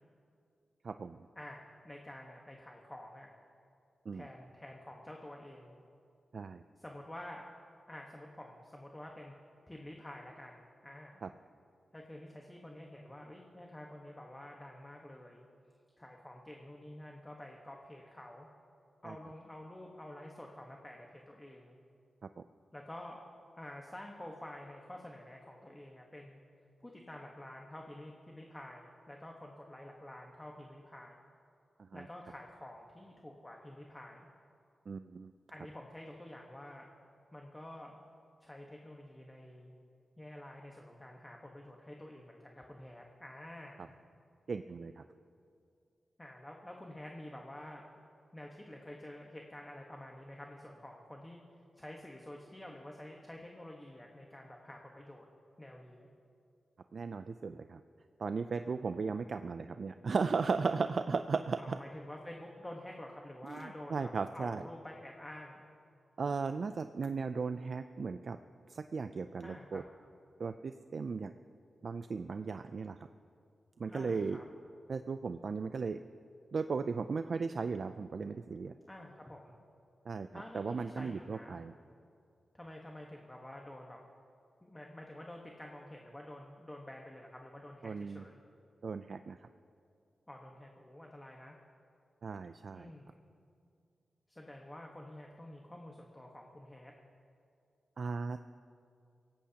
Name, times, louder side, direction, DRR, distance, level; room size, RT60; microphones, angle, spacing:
voice 1, 0.8-1.3 4.1-4.3 6.3-6.6 11.2-11.3 19.0-19.2 22.4-22.5 31.8-32.1 34.9-35.3 44.5-45.0 56.9-57.8 58.2-61.8 63.4-64.6 66.2-68.4 68.7-69.8 70.4-71.3 71.8-73.1 73.8-74.4 74.9-76.0 76.5-78.7 80.1-81.7 87.8-88.3 88.8-89.5 92.2-92.9 98.0-98.4, right 4 dB, 55° right, 9 dB, 0.4 m, -36 dB
voice 2, 1.3-3.3 4.1-5.7 6.8-7.5 7.9-9.3 9.7-11.2 11.9-15.5 16.0-18.5 19.0-21.8 22.7-23.2 23.6-26.4 26.8-31.1 31.9-34.3 35.5-36.9 37.3-38.0 38.4-39.7 40.2-43.9 46.2-47.8 48.3-51.4 51.7-55.3 55.6-56.1 61.6-65.6 69.4-69.8 73.9-74.4 78.9-79.5 80.3-81.6 82.5-84.0 84.6-88.4 90.3-91.5 92.7-93.2 94.3-96.9, left 1 dB, 15° left, 0 dB, 1.2 m, -49 dB
24.5 x 17.5 x 2.9 m, 2.4 s
wide cardioid pair, 120°, 0 cm